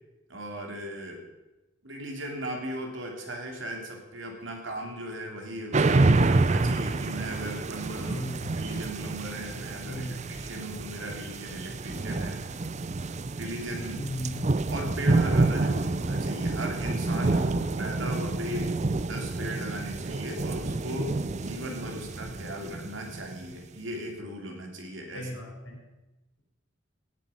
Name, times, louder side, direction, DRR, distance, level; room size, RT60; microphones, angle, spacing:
voice 1, 0.3-1.2 1.8-8.2 8.6-12.4 13.3-14.0 14.7-18.7 19.1-21.1 21.4-25.3, right 1 dB, 75° right, 2 dB, 2.8 m, -37 dB
sound 1, 5.7-23.5, right 3 dB, 35° right, 0.5 m, -28 dB
voice 2, 8.0-8.5 9.8-10.2 13.9-14.4 17.3-17.5 25.1-25.8, equal, 85° left, -1 dB, 5.4 m, -37 dB
17.0 x 7.4 x 5.6 m, 1.0 s
head